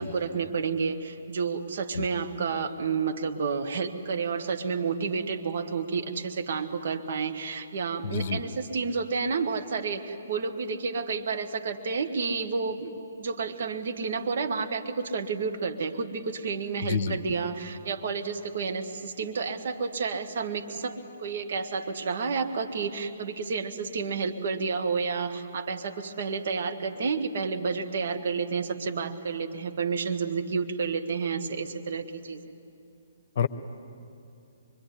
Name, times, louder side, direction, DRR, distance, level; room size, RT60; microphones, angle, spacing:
voice 1, 0.0-12.9 13.2-32.4, right 5 dB, 50° right, 5 dB, 1.9 m, -30 dB
voice 2, 8.0-8.4 16.8-17.2 33.4-33.5, left 5 dB, 45° left, 12 dB, 1.1 m, -27 dB
24.5 x 24.0 x 9.8 m, 2.6 s
figure-of-eight pair, 130°, 0 cm